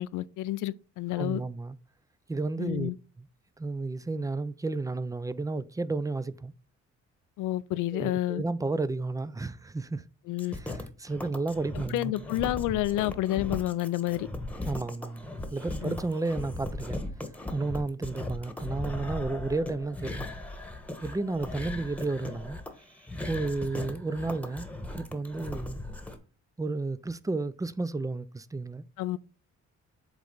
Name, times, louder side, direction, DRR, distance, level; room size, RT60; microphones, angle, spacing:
voice 1, 0.0-1.4 2.6-3.0 7.4-8.4 10.3-10.5 11.9-14.3 15.8-15.9 29.0-29.2, left 15 dB, 85° left, 0.5 m, -29 dB
voice 2, 1.1-1.8 2.3-2.9 3.2-3.3 3.6-6.5 7.9-10.0 10.5-12.1 14.6-17.0 17.5-20.3 21.0-22.6 23.3-24.7 25.0-25.8 26.6-28.8, right 3 dB, 10° right, 0.4 m, -32 dB
sound 1, 10.4-26.2, left 2 dB, 5° left, 1.2 m, -38 dB
8.1 x 3.3 x 3.9 m
cardioid pair, 90°, 30 cm